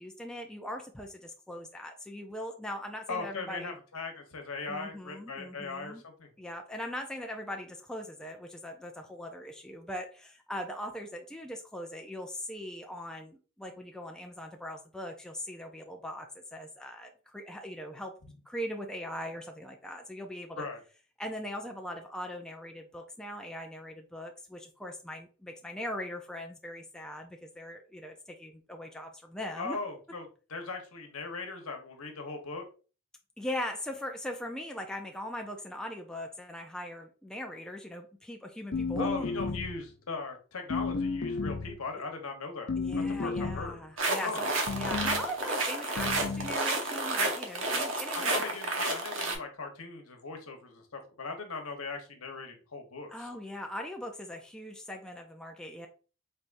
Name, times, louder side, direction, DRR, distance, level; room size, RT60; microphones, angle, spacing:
voice 1, 0.0-3.8 4.7-6.0 6.4-18.2 18.5-20.6 21.2-29.8 33.4-39.3 42.8-48.4 53.1-55.9, left 1 dB, 5° left, 2 dB, 0.4 m, -40 dB
voice 2, 3.1-6.3 20.6-20.8 29.6-32.6 38.9-43.8 44.2-44.4 48.1-53.3, left 4 dB, 85° left, 4 dB, 1.0 m, -39 dB
sound 1, 38.7-39.9 40.7-41.8 42.7-43.8 44.7-45.2 46.0-46.5, left 4 dB, 55° left, 0.5 m, -32 dB
sound 2, 44.0-49.4, right 2 dB, 60° right, 0.8 m, -31 dB
4.0 x 3.5 x 2.5 m, 0.36 s
head